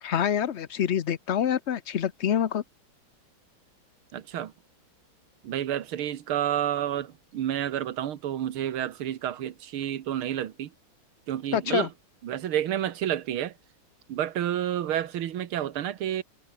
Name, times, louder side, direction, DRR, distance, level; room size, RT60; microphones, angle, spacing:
voice 1, 0.0-2.6 11.5-11.9, left 9 dB, 60° left, 0.7 m, -26 dB
voice 2, 4.1-4.5 5.4-10.7 11.3-11.9 12.2-13.5 14.1-16.2, right 11 dB, 90° right, 2.1 m, -30 dB
omnidirectional pair, 2.3 m